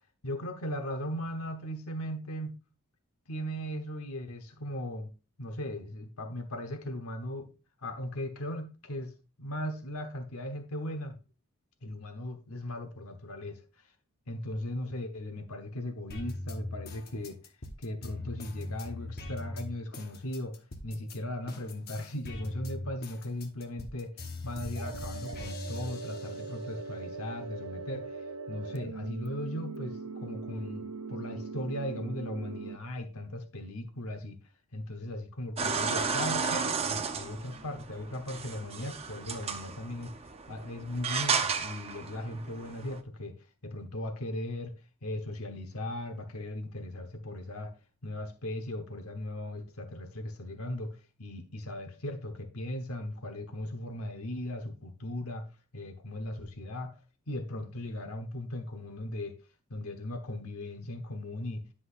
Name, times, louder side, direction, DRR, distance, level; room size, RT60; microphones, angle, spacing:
voice 1, 0.2-2.6 3.3-5.1 5.4-7.5 7.8-9.1 9.4-11.2 11.8-13.6 14.3-17.4 17.8-20.5 20.8-24.1 24.4-28.2 28.5-34.4 34.7-40.1 40.5-43.4 43.6-44.7 45.0-47.7 48.0-55.5 55.7-57.0 57.3-59.4 59.7-61.6, left 1 dB, 75° left, 1.0 m, -38 dB
sound 1, 16.1-21.2 21.5-26.7 27.1-28.1, left 2 dB, 45° left, 1.1 m, -41 dB
sound 2, 24.8-32.8, right 4 dB, 80° right, 0.7 m, -41 dB
sound 3, 35.6-43.0, right 5 dB, 25° right, 0.6 m, -33 dB
9.8 x 6.1 x 2.5 m
head